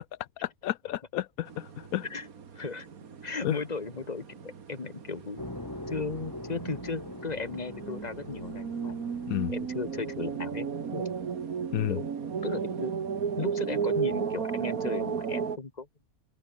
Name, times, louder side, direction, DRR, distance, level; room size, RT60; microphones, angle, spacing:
voice 1, 0.4-2.0 3.4-3.6 9.3-9.5 11.7-12.0, left 13 dB, 85° left, 1.1 m, -31 dB
sound 1, 1.5-15.6, right 6 dB, 80° right, 2.1 m, -35 dB
voice 2, 2.5-5.4 5.9-9.0 9.5-10.7 10.9-11.2 11.9-12.0 12.4-13.0 13.4-15.9, left 4 dB, 30° left, 1.9 m, -36 dB
sound 2, 5.4-11.7, left 1 dB, 15° left, 2.2 m, -43 dB
open air
omnidirectional pair, 1.5 m